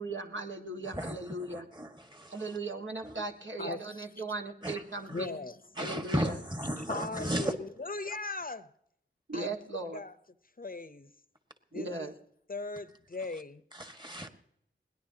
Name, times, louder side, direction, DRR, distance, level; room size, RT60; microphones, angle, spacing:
voice 1, 0.0-1.7 2.3-5.4 5.8-6.4 9.3-10.0 11.7-12.1, right 2 dB, 70° right, 1.8 m, -38 dB
voice 2, 0.9-2.3 3.0-3.1 4.6-4.8 5.1-5.2 5.8-7.5 13.7-14.3, right 1 dB, 20° right, 1.6 m, -35 dB
voice 3, 3.6-4.1 5.1-5.6 6.9-8.7 9.3-9.6 9.9-10.1 10.6-11.1 11.7-12.1 12.5-13.6, left 3 dB, 45° left, 0.7 m, -38 dB
21.5 x 18.0 x 2.8 m
wide cardioid pair, 55°, 20 cm